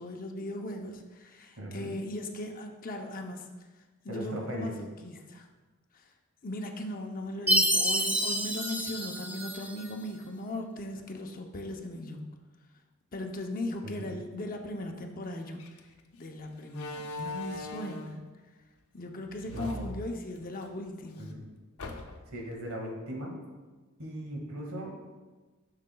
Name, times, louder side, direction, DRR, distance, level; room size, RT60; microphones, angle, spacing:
voice 1, 0.0-3.5 4.0-5.5 5.9-6.1 6.4-12.3 13.1-15.7 16.1-18.3 18.9-21.5, left 1 dB, 40° left, 3 dB, 0.7 m, -38 dB
voice 2, 1.6-2.0 4.1-4.7 13.8-14.1 19.5-19.9 21.2-21.5 22.3-23.4 24.0-25.0, equal, 70° right, -1 dB, 1.9 m, -38 dB
Chime, 7.5-9.9, equal, 10° right, 0.6 m, -28 dB
Slam, 15.6-15.8 16.7-18.2 19.3-20.7 21.1-21.2 21.8-22.4, left 2 dB, 85° left, 0.7 m, -40 dB
11.0 x 6.5 x 2.3 m, 1.3 s
head